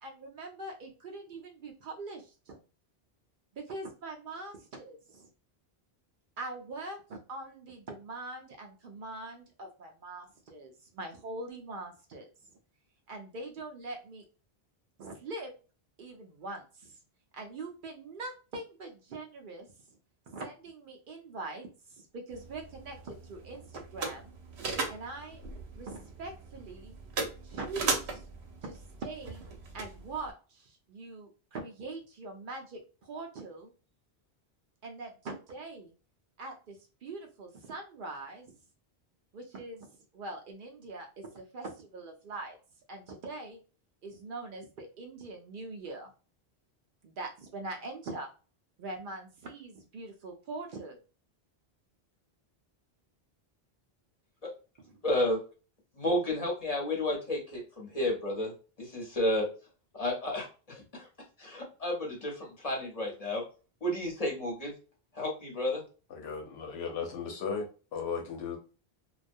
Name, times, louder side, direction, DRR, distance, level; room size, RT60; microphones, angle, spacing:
voice 1, 0.0-2.6 3.6-5.3 6.4-12.3 13.1-14.2 15.0-15.5 16.0-17.0 17.3-19.7 20.3-24.4 24.9-25.4 25.7-26.9 27.4-28.3 28.6-29.4 29.7-33.7 34.8-35.9 36.4-38.5 39.3-42.6 42.9-43.6 44.0-46.1 47.0-48.3 48.8-51.0, right 2 dB, 60° right, 0.6 m, -42 dB
sound 1, 22.3-30.3, right 4 dB, 85° right, 0.9 m, -38 dB
voice 2, 55.0-55.4 55.9-59.5 59.9-61.1 61.4-63.4 63.8-64.7 65.1-65.8, left 1 dB, 40° left, 0.9 m, -32 dB
voice 3, 66.1-68.6, left 5 dB, 90° left, 1.0 m, -36 dB
2.3 x 2.1 x 2.5 m
omnidirectional pair, 1.1 m